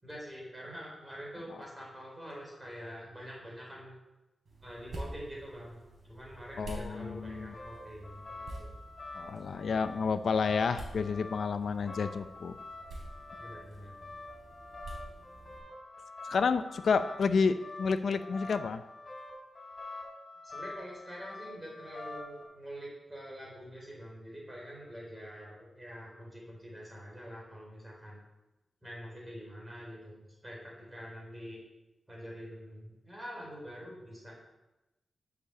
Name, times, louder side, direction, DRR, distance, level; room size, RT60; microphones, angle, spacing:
voice 1, 0.0-4.0 4.6-8.8 13.4-14.1 20.4-28.2 28.8-31.6 32.1-34.3, equal, 15° right, -4 dB, 4.3 m, -46 dB
sound 1, 4.5-15.6, right 1 dB, 60° right, 3.7 m, -48 dB
voice 2, 6.6-7.5 9.1-12.6 16.2-18.8, left 5 dB, 65° left, 11 dB, 0.6 m, -30 dB
sound 2, 7.1-22.4, left 2 dB, 25° left, 3.4 m, -46 dB
8.2 x 6.8 x 6.9 m, 1.0 s
wide cardioid pair, 140°, 0 cm